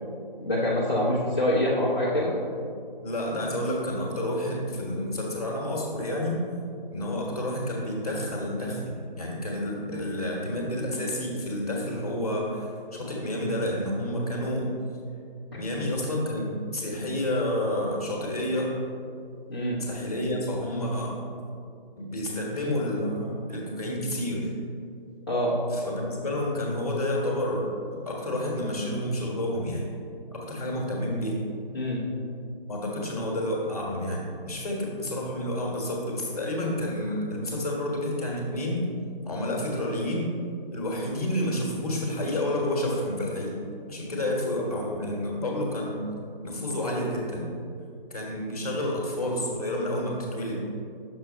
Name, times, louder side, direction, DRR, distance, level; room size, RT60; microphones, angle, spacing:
voice 1, 0.4-2.3 19.5-19.8 25.3-25.6 31.7-32.0, left 1 dB, 25° left, -12 dB, 0.9 m, -25 dB
voice 2, 3.0-6.4 6.9-14.7 15.5-18.8 19.8-21.2 22.0-24.5 25.7-27.6 28.0-29.8 30.3-31.4 32.6-38.8 39.2-40.3 40.7-43.6 43.9-46.0 46.4-47.5 48.1-50.6, left 1 dB, 40° left, -2 dB, 1.3 m, -29 dB
6.4 x 4.4 x 4.2 m, 2.4 s
figure-of-eight pair, 160°, 29 cm